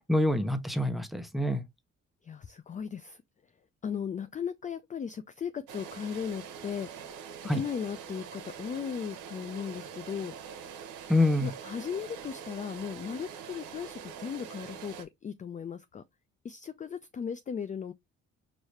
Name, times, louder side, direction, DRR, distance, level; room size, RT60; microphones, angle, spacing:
voice 1, 0.1-1.6 7.5-7.6 11.1-11.5, left 1 dB, ahead, 0.7 m, -26 dB
voice 2, 2.2-3.2 3.8-7.1 7.4-10.3 11.4-16.0 16.4-17.9, left 7 dB, 25° left, 0.3 m, -37 dB
sound 1, 5.7-15.1, right 7 dB, 80° right, 0.9 m, -44 dB
4.8 x 2.6 x 3.1 m
cardioid pair, 90°, 30 cm